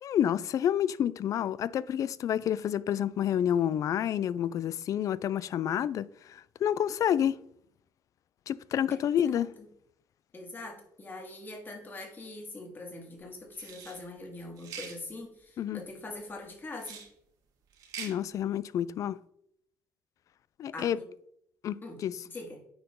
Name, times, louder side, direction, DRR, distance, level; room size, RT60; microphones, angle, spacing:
voice 1, 0.0-7.4 8.5-9.5 15.6-15.8 18.0-19.2 20.6-21.0 21.6-21.8 22.0-22.1, left 10 dB, 60° left, 0.4 m, -29 dB
voice 2, 8.9-9.4 10.3-17.0 20.7-21.1 21.8-22.0 22.3-22.6, left 2 dB, 30° left, 2.5 m, -43 dB
sound 1, 13.5-14.0 14.6-15.0 16.8-17.1 17.7-18.1, right 6 dB, 75° right, 1.9 m, -43 dB
9.4 x 4.7 x 3.8 m
cardioid pair, 90°, 7 cm